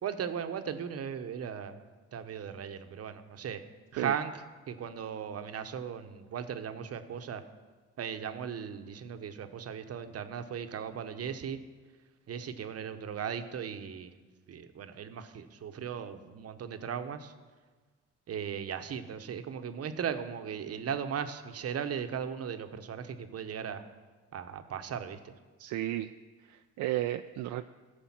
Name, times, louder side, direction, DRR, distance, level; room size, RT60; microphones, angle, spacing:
voice 1, 0.0-1.8 2.1-3.6 3.9-4.4 4.7-7.4 8.0-11.6 12.3-14.1 14.5-17.3 18.3-23.8 24.3-25.3, right 7 dB, 55° right, 9 dB, 0.9 m, -37 dB
voice 2, 25.6-26.1 26.5-27.6, right 14 dB, 75° right, 8 dB, 0.4 m, -33 dB
14.5 x 5.1 x 7.3 m, 1.4 s
cardioid pair, 90°, 30 cm